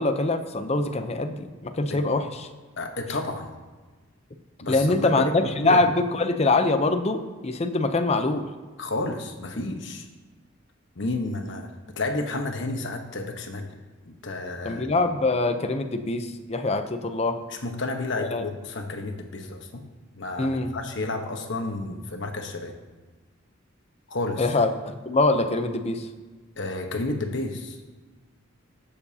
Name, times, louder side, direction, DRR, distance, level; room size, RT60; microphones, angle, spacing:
voice 1, 0.0-2.5 4.7-8.5 14.6-17.4 18.3-18.4 20.4-20.7 24.4-26.1, left 2 dB, 35° left, 8 dB, 0.6 m, -24 dB
voice 2, 2.8-3.5 4.6-5.8 8.8-10.1 10.9-11.7 12.0-13.7 14.0-14.9 17.5-19.8 20.1-22.8 24.1-24.5 26.6-27.8, left 2 dB, 65° left, 4 dB, 1.1 m, -31 dB
19.0 x 6.9 x 2.8 m, 1.3 s
head